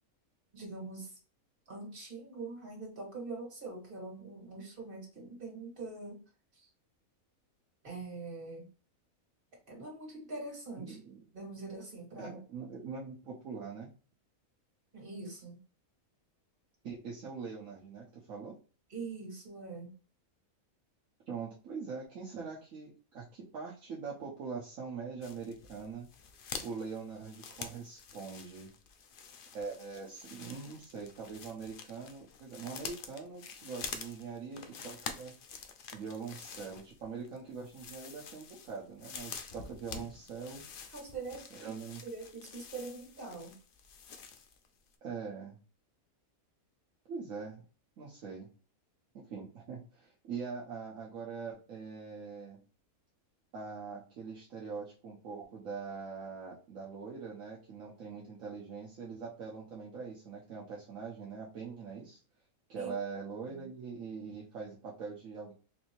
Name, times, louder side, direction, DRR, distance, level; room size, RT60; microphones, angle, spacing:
voice 1, 0.5-1.2 1.7-6.2 6.5-6.7 7.8-8.6 9.7-11.0 11.3-12.4 14.9-15.6 18.9-19.9 40.9-43.5 62.8-62.9 63.5-63.7, right 3 dB, 40° right, -2 dB, 2.0 m, -43 dB
voice 2, 10.8-11.2 12.2-13.9 16.8-18.5 21.3-26.1 26.6-28.7 29.5-35.3 35.9-40.6 41.5-42.0 45.0-45.6 47.1-47.6 48.0-48.5 49.1-52.6 53.5-62.2 62.7-65.5, right 5 dB, 70° right, -5 dB, 1.2 m, -43 dB
sound 1, 25.2-44.7 44.9-45.0, left 6 dB, 70° left, 0.5 m, -47 dB
4.1 x 2.7 x 2.9 m, 0.37 s
omnidirectional pair, 1.5 m